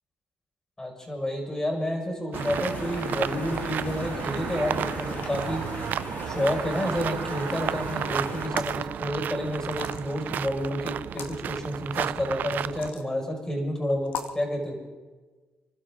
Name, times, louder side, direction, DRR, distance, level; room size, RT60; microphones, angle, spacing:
voice 1, 0.8-5.7 6.2-14.8, left 1 dB, 20° left, 1 dB, 5.9 m, -30 dB
sound 1, 2.3-8.5, left 4 dB, 65° left, 2.0 m, -38 dB
sound 2, 2.3-12.9, right 10 dB, 70° right, 0.4 m, -32 dB
sound 3, 8.3-8.8 9.7-10.3 11.0-11.4 12.6-13.1 14.1-14.4, left 7 dB, 90° left, 1.3 m, -37 dB
29.5 x 12.5 x 3.8 m, 1.3 s
cardioid pair, 85°, 3 cm